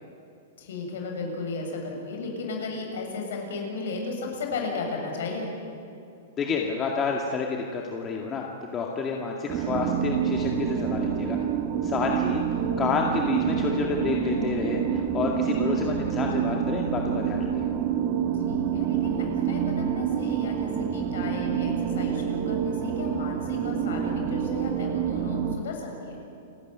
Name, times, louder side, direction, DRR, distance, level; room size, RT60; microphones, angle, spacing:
voice 1, 0.6-5.5 14.3-14.6 18.5-26.2, left 3 dB, 75° left, 1 dB, 7.3 m, -35 dB
voice 2, 6.4-11.4 11.8-12.4 12.8-17.7, left 5 dB, 25° left, 0 dB, 2.1 m, -29 dB
sound 1, 9.5-25.6, right 8 dB, 35° right, 1.7 m, -27 dB
29.0 x 14.5 x 9.5 m, 2.7 s
hypercardioid pair, 145°, 0 cm